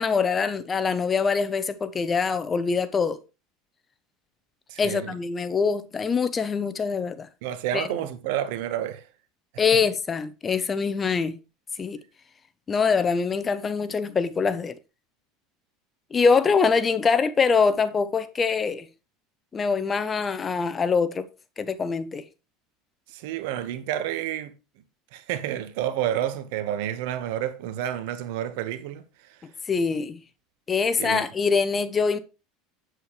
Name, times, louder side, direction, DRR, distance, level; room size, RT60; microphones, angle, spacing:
voice 1, 0.0-3.2 4.8-7.3 7.7-8.0 9.6-11.4 11.8-12.0 12.7-14.7 16.1-18.9 19.5-21.3 21.6-22.2 29.7-30.2 30.7-32.2, left 5 dB, 25° left, 0.8 m, -24 dB
voice 2, 4.7-5.1 7.4-9.0 23.1-24.5 25.1-29.0 31.0-31.3, right 11 dB, 75° right, 1.3 m, -29 dB
8.2 x 7.9 x 3.2 m
supercardioid pair, 120°, 0 cm